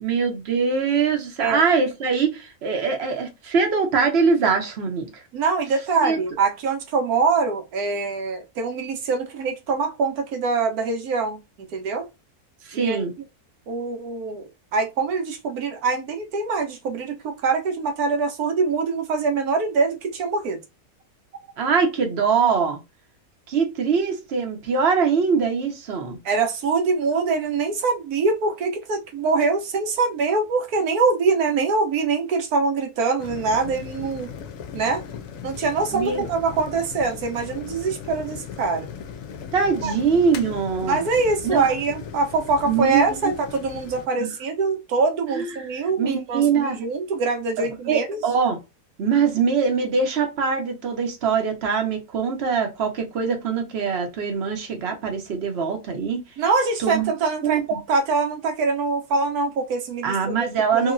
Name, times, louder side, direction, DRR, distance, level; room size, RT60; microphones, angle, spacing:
voice 1, 0.0-5.2 6.0-6.2 12.7-13.1 21.6-22.8 23.5-26.2 35.9-36.3 39.5-41.0 41.4-41.7 42.6-43.2 44.2-44.3 45.3-45.5 46.0-46.8 47.6-48.6 49.0-56.2 56.8-57.1 57.4-57.8 60.0-60.9, right 5 dB, 50° right, 0.9 m, -23 dB
voice 2, 5.3-11.4 11.7-12.1 12.7-13.0 13.7-20.6 26.2-34.3 34.7-35.0 35.4-38.9 39.8-39.9 40.8-48.2 56.4-60.5 60.7-60.9, right 4 dB, 75° right, 1.2 m, -24 dB
sound 1, 33.2-44.1, left 7 dB, 70° left, 0.9 m, -37 dB
3.0 x 2.8 x 2.5 m
omnidirectional pair, 1.6 m